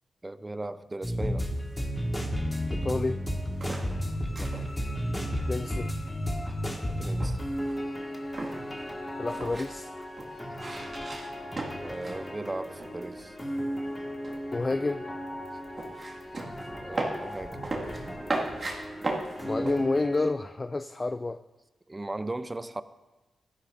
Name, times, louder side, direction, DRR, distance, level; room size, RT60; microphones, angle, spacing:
voice 1, 0.2-1.5 4.3-4.5 7.0-7.4 11.8-13.4 16.8-17.6 21.9-22.8, right 2 dB, 25° right, 0.6 m, -37 dB
sound 1, 1.0-20.3, equal, 20° left, 1.8 m, -34 dB
voice 2, 2.7-3.2 5.5-5.9 9.2-9.9 14.5-15.0 19.4-21.4, left 3 dB, 35° left, 0.3 m, -29 dB
sound 2, 3.3-12.3 12.5-13.4 13.7-19.8, right 2 dB, 45° right, 2.0 m, -37 dB
sound 3, 3.8-10.0, left 2 dB, 50° left, 3.4 m, -52 dB
16.0 x 11.5 x 2.6 m
supercardioid pair, 50°, 0 cm